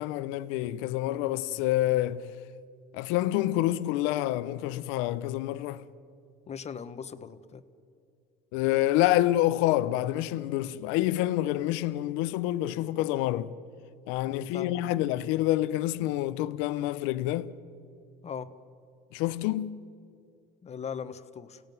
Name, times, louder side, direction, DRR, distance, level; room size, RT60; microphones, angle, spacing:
voice 1, 0.0-2.3 2.9-5.8 8.5-13.5 14.1-17.5 19.1-19.8, left 15 dB, 75° left, 0.9 m, -27 dB
voice 2, 6.5-7.6 14.3-14.8 18.2-18.5 20.6-21.6, left 7 dB, 35° left, 1.3 m, -39 dB
29.0 x 17.0 x 9.3 m
supercardioid pair, 105°, 20 cm